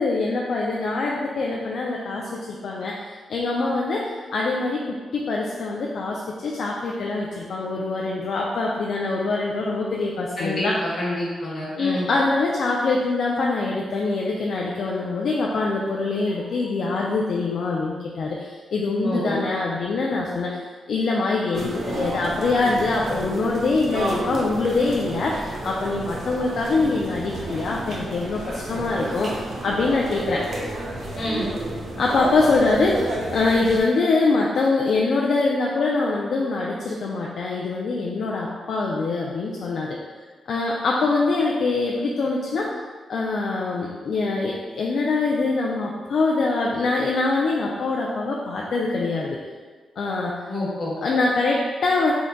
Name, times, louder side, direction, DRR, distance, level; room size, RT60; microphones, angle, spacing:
voice 1, 0.0-10.8 11.7-20.6 20.9-30.4 32.0-40.0 40.5-42.7 43.1-49.4 50.0-50.4 51.0-52.1, left 3 dB, 65° left, -2 dB, 0.3 m, -24 dB
voice 2, 10.4-12.1 19.0-19.4 31.1-31.4 50.5-51.0, left 1 dB, 50° left, -7 dB, 1.3 m, -28 dB
sound 1, 21.5-33.8, right 1 dB, 60° right, 0.7 m, -31 dB
3.5 x 2.2 x 3.8 m, 1.5 s
wide cardioid pair, 130°, 0 cm